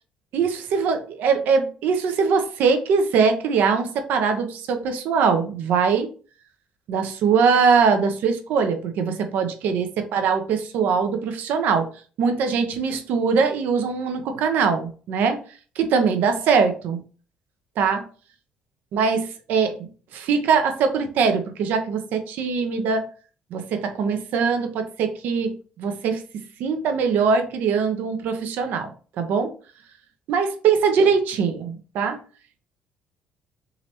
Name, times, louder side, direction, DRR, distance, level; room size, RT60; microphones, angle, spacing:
voice 1, 0.3-6.1 6.9-11.9 12.2-15.4 15.8-17.0 17.8-18.0 18.9-23.1 23.5-26.2 26.6-28.9 29.2-29.5 30.3-32.2, right 5 dB, 70° right, 6 dB, 0.8 m, -22 dB
3.8 x 3.1 x 2.8 m, 0.39 s
supercardioid pair, 65°, 3 cm